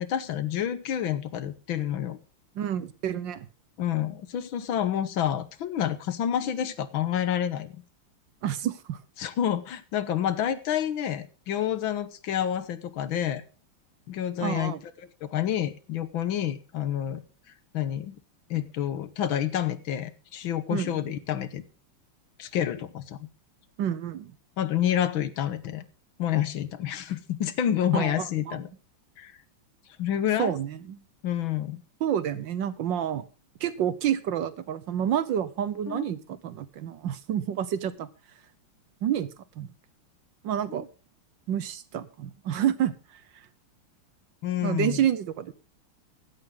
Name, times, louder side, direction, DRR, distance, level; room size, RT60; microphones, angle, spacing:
voice 1, 0.0-2.2 3.8-7.8 9.2-13.4 14.1-14.7 15.2-17.2 17.7-18.2 18.5-21.6 22.4-23.3 24.6-25.9 26.2-28.7 29.2-29.4 30.0-30.5 31.2-31.8 35.9-36.1 44.4-45.0, left 10 dB, 70° left, 14 dB, 1.8 m, -28 dB
voice 2, 2.5-3.5 8.4-9.0 14.4-14.8 20.7-21.0 23.8-24.3 27.9-28.6 30.4-31.0 32.0-33.2 33.6-38.1 39.0-39.3 39.6-39.7 40.4-40.9 41.5-43.4 44.6-45.5, right 10 dB, 65° right, 15 dB, 1.4 m, -29 dB
16.5 x 12.0 x 3.8 m, 0.35 s
omnidirectional pair, 2.4 m